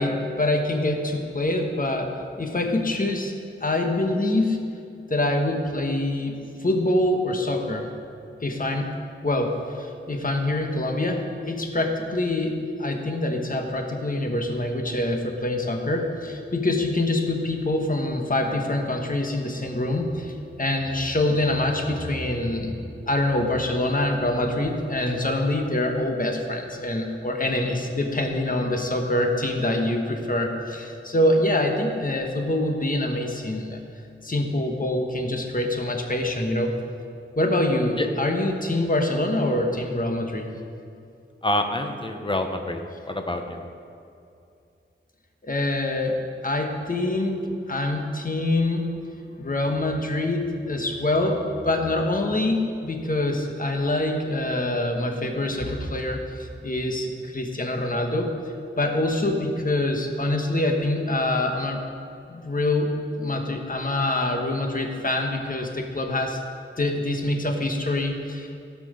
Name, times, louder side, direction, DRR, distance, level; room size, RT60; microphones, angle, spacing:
voice 1, 0.0-2.1 2.4-3.3 3.6-4.6 5.1-7.9 8.4-8.9 9.2-22.8 23.1-33.8 34.2-36.8 37.3-40.5 45.4-48.9 49.4-58.3 58.8-61.8 62.3-66.4 66.8-68.7, left 1 dB, 40° left, 3 dB, 1.3 m, -25 dB
voice 2, 41.4-42.8 43.1-43.6, left 1 dB, 25° left, 5 dB, 0.9 m, -26 dB
17.0 x 6.0 x 5.1 m, 2.5 s
wide cardioid pair, 80°, 21 cm